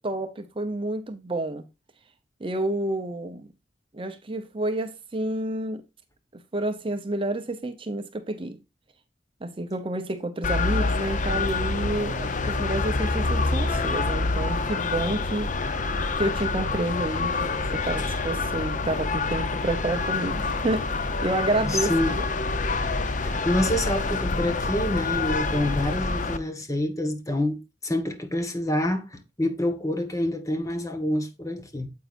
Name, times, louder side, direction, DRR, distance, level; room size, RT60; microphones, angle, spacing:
voice 1, 0.0-1.6 2.4-3.5 3.9-5.8 6.3-8.6 9.4-15.5 16.2-22.2, right 1 dB, 30° right, 0.7 m, -29 dB
sound 1, 10.4-26.4, left 3 dB, 45° left, 0.7 m, -27 dB
voice 2, 21.7-22.2 23.2-31.9, left 1 dB, 20° left, 1.4 m, -27 dB
9.4 x 8.0 x 2.5 m
head